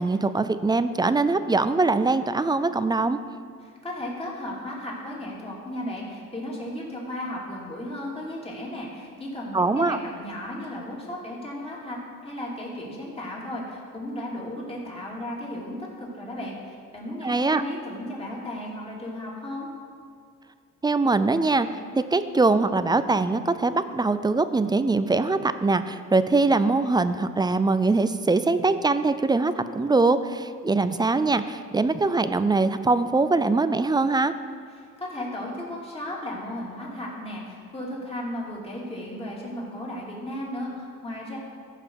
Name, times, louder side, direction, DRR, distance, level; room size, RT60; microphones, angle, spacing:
voice 1, 0.0-3.2 9.5-10.0 17.2-17.6 20.8-21.8 22.1-34.3, right 3 dB, 15° right, 12 dB, 0.4 m, -22 dB
voice 2, 3.6-12.0 12.2-19.7 34.8-41.4, left 1 dB, 20° left, -4 dB, 2.9 m, -35 dB
14.5 x 5.8 x 4.7 m, 2.2 s
cardioid pair, 90°, 30 cm